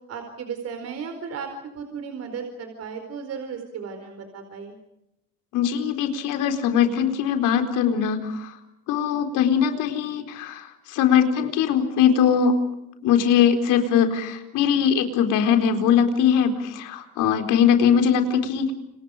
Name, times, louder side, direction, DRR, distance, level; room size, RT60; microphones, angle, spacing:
voice 1, 0.1-4.8, right 6 dB, 55° right, 6 dB, 4.6 m, -35 dB
voice 2, 5.5-8.6 8.9-12.5 13.0-18.7, left 8 dB, 85° left, 6 dB, 4.4 m, -21 dB
29.5 x 27.5 x 5.1 m, 0.85 s
cardioid pair, 140°, 31 cm